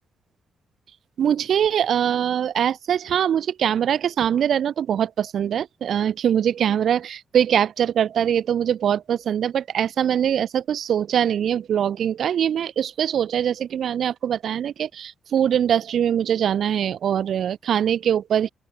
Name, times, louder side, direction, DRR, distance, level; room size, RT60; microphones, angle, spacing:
voice 1, 1.2-18.5, right 9 dB, 70° right, 0.7 m, -22 dB
open air
cardioid pair, 75°, 0 cm